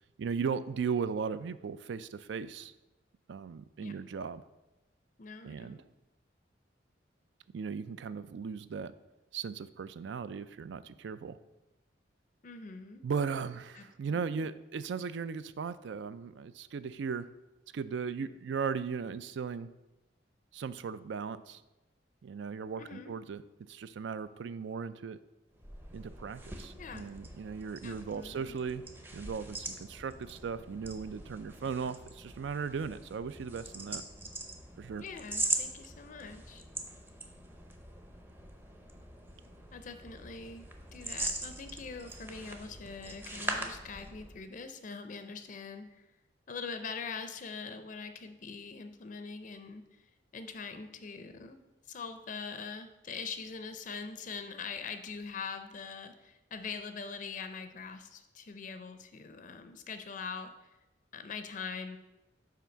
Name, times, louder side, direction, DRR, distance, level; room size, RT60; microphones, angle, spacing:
voice 1, 0.2-2.7 3.3-4.4 5.4-5.8 7.5-8.9 9.3-11.4 13.0-17.3 17.7-19.7 20.5-21.6 22.2-23.4 23.7-25.2 25.9-28.8 29.1-34.0 34.8-35.0, right 6 dB, 75° right, 15 dB, 0.4 m, -37 dB
voice 2, 5.2-5.8 12.4-13.0 13.7-14.4 22.8-23.1 26.8-27.1 27.8-28.6 35.0-36.6 39.7-46.1 46.5-50.0 50.3-51.6 51.9-60.7 61.1-62.0, left 5 dB, 45° left, 8 dB, 0.4 m, -43 dB
sound 1, 25.5-44.4, right 2 dB, 10° right, 0.6 m, -42 dB
5.8 x 4.6 x 6.2 m, 1.0 s
head